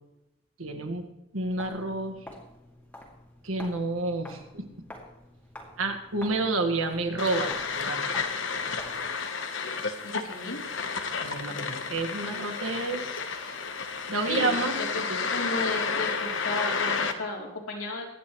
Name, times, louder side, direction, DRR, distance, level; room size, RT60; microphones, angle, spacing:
voice 1, 0.6-1.1 1.3-2.2 3.4-4.7 5.8-8.1 11.2-13.0 13.4-13.5 14.1-15.3, right 2 dB, 90° right, 5 dB, 1.8 m, -30 dB
Walk footsteps, 1.5-9.2, left 1 dB, 5° left, 2.3 m, -48 dB
sound 1, 7.2-17.1, left 5 dB, 65° left, 1.1 m, -31 dB
voice 2, 10.0-10.6 14.3-15.1 15.3-18.1, left 2 dB, 85° left, -1 dB, 3.5 m, -34 dB
24.5 x 9.6 x 3.2 m, 0.95 s
head